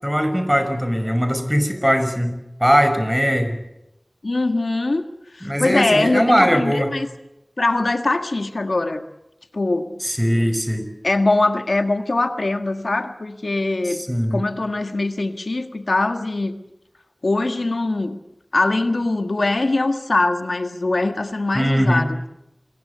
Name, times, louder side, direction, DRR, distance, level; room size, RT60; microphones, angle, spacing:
voice 1, 0.0-3.6 5.4-6.9 10.0-10.9 13.8-14.4 21.5-22.1, equal, 5° right, 8 dB, 5.7 m, -20 dB
voice 2, 4.2-5.1 5.3-7.1 7.6-9.0 9.5-10.0 11.0-16.6 17.2-18.2 18.5-22.3, left 2 dB, 80° left, 7 dB, 1.6 m, -22 dB
27.0 x 21.5 x 6.9 m, 0.90 s
wide cardioid pair, 45°, 0 cm